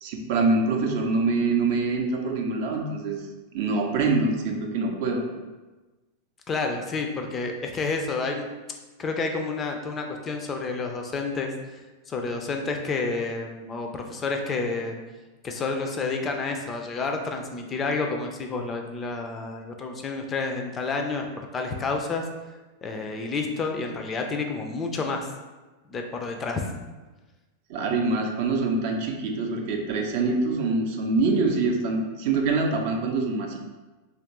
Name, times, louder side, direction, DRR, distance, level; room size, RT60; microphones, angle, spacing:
voice 1, 0.0-3.2 3.5-5.3 27.7-33.6, right 3 dB, 50° right, 2 dB, 0.4 m, -25 dB
voice 2, 6.5-8.5 9.0-11.5 12.1-15.0 15.4-22.3 22.8-25.3 25.9-26.6, left 4 dB, 25° left, 3 dB, 0.3 m, -29 dB
3.0 x 2.4 x 2.9 m, 1.2 s
figure-of-eight pair, 90°, 0 cm